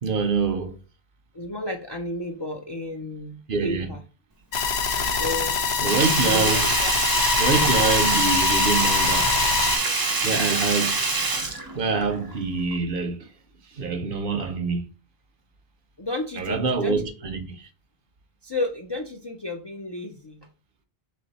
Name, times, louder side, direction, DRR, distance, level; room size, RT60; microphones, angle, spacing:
voice 1, 0.0-0.8 3.5-3.9 5.8-6.7 7.4-9.3 10.2-11.0 11.8-13.3 13.7-14.8 16.4-17.7, right 4 dB, 60° right, 0.8 m, -25 dB
voice 2, 1.3-4.0 5.1-5.6 6.1-6.9 16.0-17.1 18.4-20.5, left 1 dB, 40° left, 0.4 m, -32 dB
sound 1, 4.5-9.8, left 5 dB, 90° left, 1.0 m, -24 dB
Sink (filling or washing), 5.8-12.4 12.7-12.8, right 3 dB, 30° right, 0.4 m, -25 dB
3.7 x 3.2 x 4.0 m
omnidirectional pair, 1.0 m